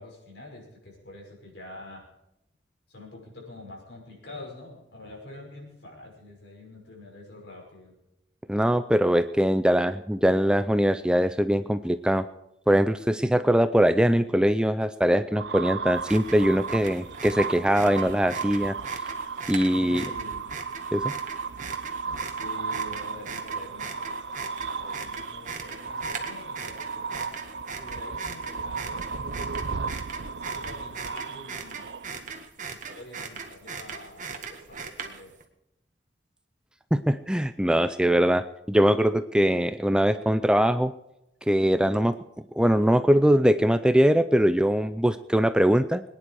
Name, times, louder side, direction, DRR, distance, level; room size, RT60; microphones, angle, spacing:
voice 1, 0.0-2.1 2.9-7.9 19.7-20.5 22.0-24.2 24.5-27.4 27.7-29.9 30.3-32.0 32.7-35.3, left 2 dB, 65° left, -1 dB, 5.9 m, -46 dB
voice 2, 8.5-12.2 12.7-18.8 19.5-20.0 20.9-21.1 36.9-40.9 41.5-42.1 42.6-46.0, equal, 5° right, 11 dB, 0.4 m, -22 dB
sound 1, 15.4-32.4, right 5 dB, 65° right, 0.7 m, -35 dB
sound 2, 16.0-35.4, right 5 dB, 45° right, 1.6 m, -40 dB
22.5 x 10.0 x 4.8 m, 0.85 s
head